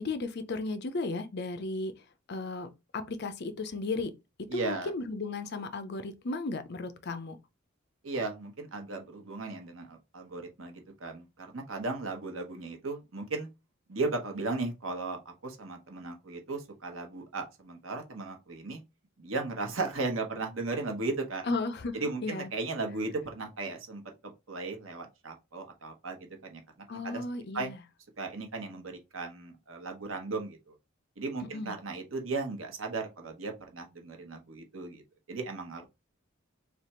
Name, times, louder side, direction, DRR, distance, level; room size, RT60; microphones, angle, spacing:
voice 1, 0.0-2.0 2.3-4.1 4.4-7.4 21.4-22.0 22.2-22.5 26.9-27.8 31.4-31.8, left 3 dB, 55° left, 0.6 m, -35 dB
voice 2, 4.5-4.9 8.0-13.5 13.9-18.8 19.2-21.5 21.9-26.6 27.0-27.2 27.5-27.7 28.2-30.7 31.2-35.0 35.3-35.9, right 3 dB, 80° right, 1.1 m, -36 dB
3.4 x 2.4 x 4.2 m
head